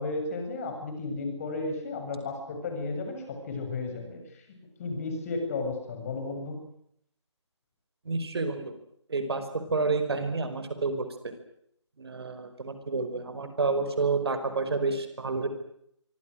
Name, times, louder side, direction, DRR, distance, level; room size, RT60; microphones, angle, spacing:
voice 1, 0.0-4.4 4.8-6.5, left 3 dB, 30° left, 5 dB, 7.3 m, -33 dB
voice 2, 8.0-8.7 9.1-9.4 9.7-11.1 12.0-15.5, right 4 dB, 55° right, 9 dB, 5.2 m, -29 dB
26.5 x 24.5 x 6.5 m, 0.71 s
figure-of-eight pair, 150°, 15 cm